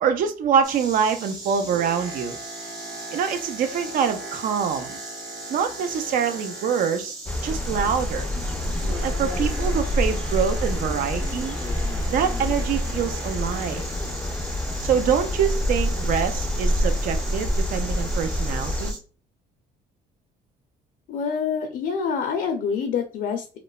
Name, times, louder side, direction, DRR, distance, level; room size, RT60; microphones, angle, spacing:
voice 1, 0.0-2.4 3.1-5.0 5.5-7.2 7.4-8.3 9.0-11.6 12.1-13.8 14.8-19.0, right 7 dB, 55° right, 0.4 m, -25 dB
Insect, 0.6-19.0, right 2 dB, 25° right, 1.1 m, -39 dB
Boat Water vehicle, 1.3-7.3 7.6-14.1 14.7-14.8, right 2 dB, 85° right, 1.0 m, -41 dB
sound 1, 7.3-18.9, left 1 dB, 10° left, 0.4 m, -27 dB
voice 2, 21.1-23.6, left 6 dB, 65° left, 0.5 m, -26 dB
3.0 x 2.0 x 2.2 m
cardioid pair, 110°, 17 cm